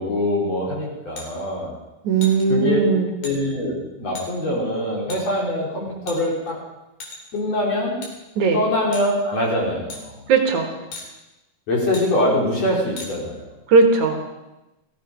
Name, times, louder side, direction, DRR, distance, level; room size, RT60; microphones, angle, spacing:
voice 1, 0.0-1.8 2.5-2.8 3.2-6.6 7.3-8.0 8.5-10.2 11.7-13.5, left 1 dB, 50° left, -3 dB, 4.5 m, -23 dB
sound 1, 1.2-1.3 2.2-2.4 3.2-3.4 4.2-4.3 5.1-5.2 6.1-6.5 7.0-7.4 8.0-8.1 8.9-9.1 9.9-10.0 10.9-11.1 11.9-12.1 13.0-13.1, left 2 dB, 65° left, 4.3 m, -36 dB
voice 2, 2.0-3.1 8.4-8.6 10.3-10.7 13.7-14.2, right 4 dB, 60° right, 4 dB, 2.7 m, -18 dB
17.5 x 15.0 x 5.0 m, 1.0 s
omnidirectional pair, 4.0 m